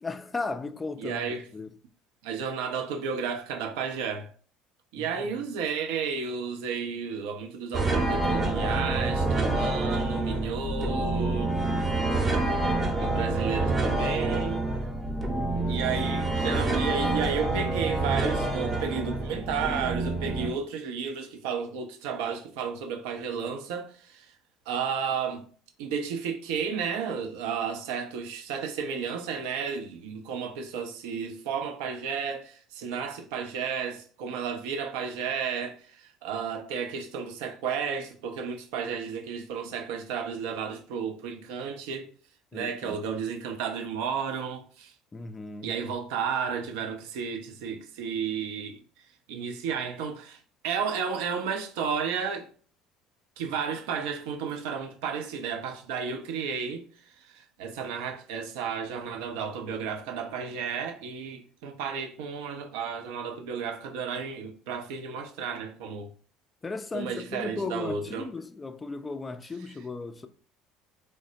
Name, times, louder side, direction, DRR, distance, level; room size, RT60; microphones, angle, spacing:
voice 1, 0.0-1.7 5.0-5.1 5.4-5.5 11.6-12.0 15.3-15.8 42.5-43.0 45.1-45.7 66.6-70.3, left 3 dB, 20° left, 0.3 m, -36 dB
voice 2, 1.0-1.4 2.2-4.3 4.9-11.9 13.0-14.7 15.7-24.3 24.7-25.4 25.8-42.1 42.5-44.9 45.6-48.8 49.3-52.5 53.4-56.8 57.2-66.1 66.9-68.3, right 6 dB, 65° right, 0.4 m, -32 dB
sound 1, 7.7-20.5, right 2 dB, 25° right, 0.7 m, -27 dB
3.1 x 2.0 x 2.6 m
figure-of-eight pair, 60°, 0 cm